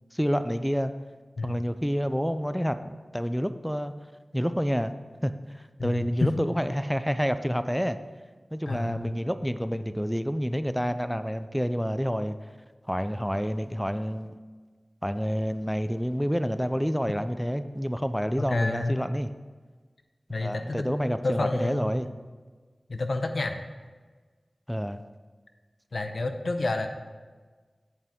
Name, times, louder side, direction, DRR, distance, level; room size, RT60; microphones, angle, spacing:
voice 1, 0.1-0.9 1.4-3.9 4.3-4.9 5.2-8.0 8.5-12.4 12.9-14.4 15.0-19.3 20.4-22.1 24.7-25.0, equal, ahead, 11 dB, 0.4 m, -28 dB
voice 2, 5.8-6.3 8.7-9.1 18.4-19.0 20.3-20.9 21.2-21.9 22.9-23.5 25.9-26.9, left 2 dB, 75° left, 6 dB, 0.6 m, -29 dB
8.2 x 7.5 x 3.6 m, 1.4 s
cardioid pair, 40°, 0 cm